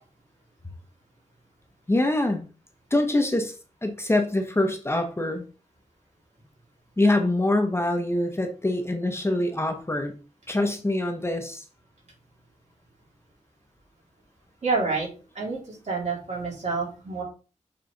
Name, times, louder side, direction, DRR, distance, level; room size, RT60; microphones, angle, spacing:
voice 1, 1.9-2.4 2.9-3.6 3.8-5.4 7.0-10.1 10.5-11.6, left 1 dB, 20° left, 5 dB, 1.0 m, -24 dB
voice 2, 14.6-15.1 15.3-17.2, right 4 dB, 65° right, -4 dB, 3.7 m, -28 dB
6.9 x 4.1 x 3.9 m, 0.36 s
wide cardioid pair, 100°, 13 cm